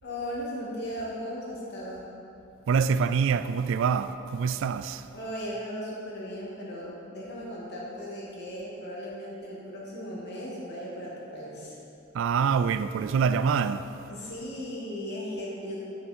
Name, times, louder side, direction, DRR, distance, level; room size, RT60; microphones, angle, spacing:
voice 1, 0.0-2.0 5.1-11.8 14.1-15.8, equal, 55° left, 2.3 m, -37 dB
voice 2, 2.7-5.0 12.1-13.9, right 6 dB, 65° right, 0.3 m, -25 dB
10.5 x 6.2 x 4.4 m
head